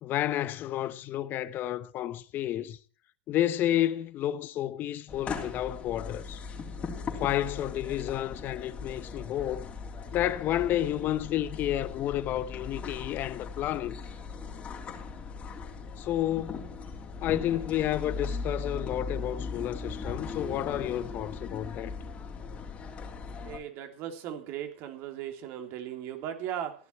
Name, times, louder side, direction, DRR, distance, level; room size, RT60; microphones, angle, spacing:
voice 1, 0.0-2.8 3.3-6.4 7.2-9.7 10.1-14.0 16.0-16.6 17.2-21.9, left 12 dB, 45° left, 1.0 m, -31 dB
sound 1, 5.1-23.6, left 4 dB, 30° left, 3.4 m, -39 dB
voice 2, 23.4-26.7, right 10 dB, 55° right, 2.9 m, -37 dB
15.0 x 11.0 x 4.4 m
hypercardioid pair, 95°, 5 cm